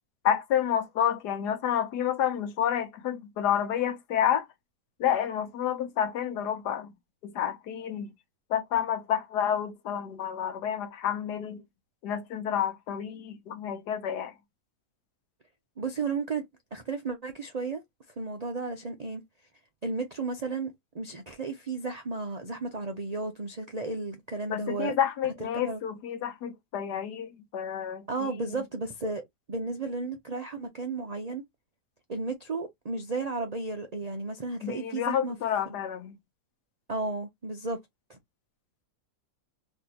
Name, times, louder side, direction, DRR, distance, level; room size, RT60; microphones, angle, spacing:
voice 1, 0.2-4.5 5.0-6.9 7.2-8.1 8.5-11.6 12.0-14.3 24.5-28.6 34.6-36.2, left 9 dB, 80° left, 1.4 m, -29 dB
voice 2, 15.8-16.4 16.7-17.8 18.2-19.2 19.8-24.9 25.5-25.8 28.1-29.2 29.5-31.4 32.1-35.3 36.9-37.8 38.1-38.2, right 3 dB, 65° right, 0.4 m, -33 dB
4.2 x 2.8 x 2.9 m
omnidirectional pair, 1.7 m